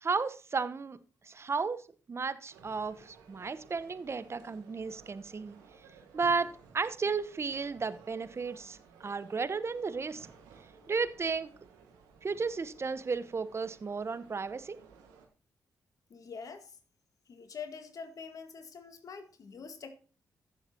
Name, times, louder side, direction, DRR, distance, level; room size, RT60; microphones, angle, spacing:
voice 1, 0.0-1.0 1.2-1.8 2.1-5.6 6.1-10.3 10.9-11.5 12.2-14.8, right 4 dB, 40° right, 1.0 m, -33 dB
sound 1, 2.5-15.3, right 6 dB, 85° right, 1.6 m, -57 dB
voice 2, 16.1-16.8 17.3-20.0, left 5 dB, 60° left, 1.8 m, -45 dB
15.5 x 7.2 x 2.9 m
hypercardioid pair, 45°, 7 cm